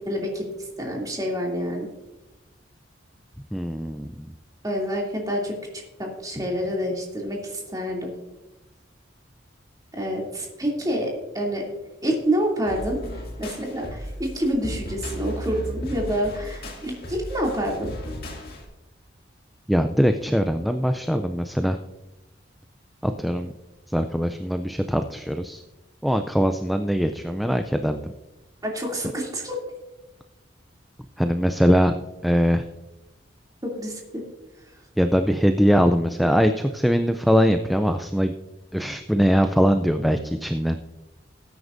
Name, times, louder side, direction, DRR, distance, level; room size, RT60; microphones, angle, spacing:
voice 1, 0.0-1.9 4.6-5.6 6.0-8.1 10.0-11.6 12.0-13.0 13.4-17.9 28.6-29.6 33.6-34.2 34.7-34.8, equal, 20° right, -1 dB, 2.7 m, -27 dB
voice 2, 3.5-4.3 19.7-21.8 23.0-23.5 23.9-25.6 26.0-28.1 31.2-31.9 32.2-32.6 35.0-38.3 38.7-40.8, equal, ahead, 7 dB, 0.4 m, -22 dB
sound 1, 12.7-18.7, equal, 55° left, 2.3 m, -35 dB
18.0 x 9.5 x 2.6 m, 1.0 s
head